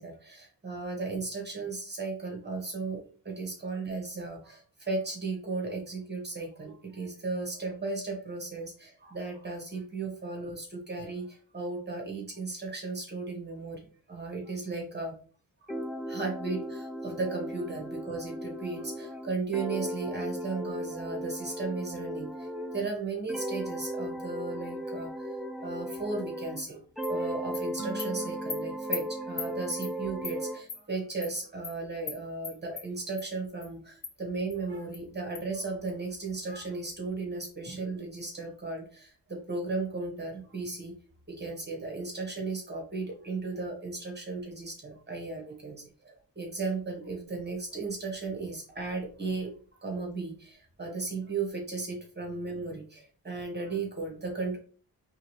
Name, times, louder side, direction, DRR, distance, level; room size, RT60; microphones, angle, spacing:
voice 1, 0.0-15.1 15.6-15.7 16.1-25.4 25.6-26.8 27.1-40.9 41.4-49.5 49.8-54.6, right 3 dB, 30° right, 1 dB, 1.3 m, -35 dB
sound 1, 15.7-22.9 23.3-26.7 27.0-30.6, right 1 dB, ahead, 0.3 m, -36 dB
Animal, 26.6-26.7 27.0-27.1 27.5-27.6 28.0-28.1 28.5-28.6 28.9-29.0 29.4-29.5 29.8-29.9 30.2-30.4 30.7-30.8 31.2-31.3 31.6-31.7 32.1-32.2 32.4-32.8 33.2-33.3 33.6-33.7 34.0-34.1 34.5-34.6 34.9-35.0 35.3-35.4, left 6 dB, 50° left, 0.8 m, -37 dB
sound 2, 27.8-30.4, right 2 dB, 50° right, 0.9 m, -46 dB
4.7 x 3.3 x 3.2 m, 0.40 s
wide cardioid pair, 150°, 35 cm